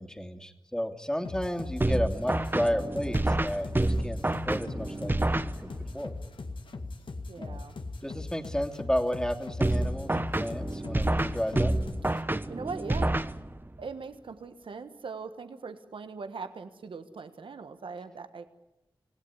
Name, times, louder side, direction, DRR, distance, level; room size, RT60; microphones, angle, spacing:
voice 1, 0.0-4.2 4.4-6.1 7.4-7.6 8.0-11.7, equal, 10° left, 6 dB, 2.9 m, -32 dB
sound 1, 1.2-12.2, left 3 dB, 75° left, 2.0 m, -40 dB
sound 2, 1.8-6.0 9.6-13.8, right 1 dB, 25° right, 1.1 m, -29 dB
voice 2, 7.3-7.7 12.5-13.2 13.8-18.5, right 4 dB, 90° right, 9 dB, 1.4 m, -40 dB
27.0 x 17.0 x 9.9 m, 0.91 s
cardioid pair, 40°, 9 cm